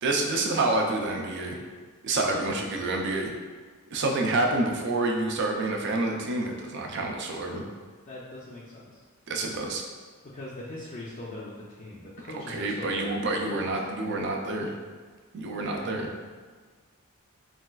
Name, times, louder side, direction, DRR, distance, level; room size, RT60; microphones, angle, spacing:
voice 1, 0.0-1.6 2.0-3.3 3.9-7.6 9.3-9.8 12.5-14.7 15.3-16.1, right 2 dB, 55° right, 1 dB, 0.4 m, -28 dB
voice 2, 8.1-9.0 10.2-13.2 13.4-13.7 15.5-15.9, left 1 dB, 35° left, -6 dB, 0.4 m, -41 dB
4.1 x 2.3 x 2.2 m, 1.5 s
head